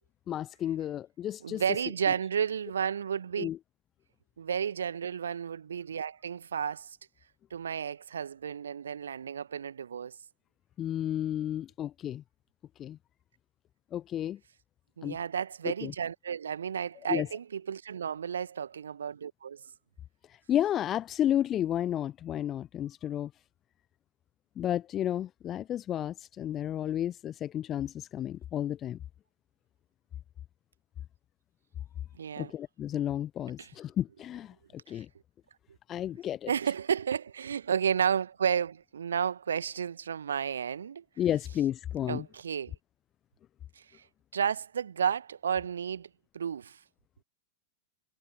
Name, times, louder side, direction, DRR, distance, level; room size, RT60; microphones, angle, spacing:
voice 1, 0.3-1.8 3.4-3.6 10.8-12.2 12.8-13.0 13.9-14.4 15.0-15.2 15.6-15.9 17.1-17.3 20.5-23.3 24.6-29.0 32.4-34.5 34.9-35.1 35.9-36.5 41.2-42.3, left 11 dB, 30° left, 0.8 m, -32 dB
voice 2, 1.4-3.5 4.4-7.0 7.5-10.1 15.0-19.6 32.1-32.5 33.6-33.7 34.9-35.0 36.5-41.0 42.1-42.7 43.8-44.0 44.3-46.1 46.3-46.8, right 7 dB, 70° right, 1.3 m, -32 dB
figure-of-eight pair, 90°, 0 cm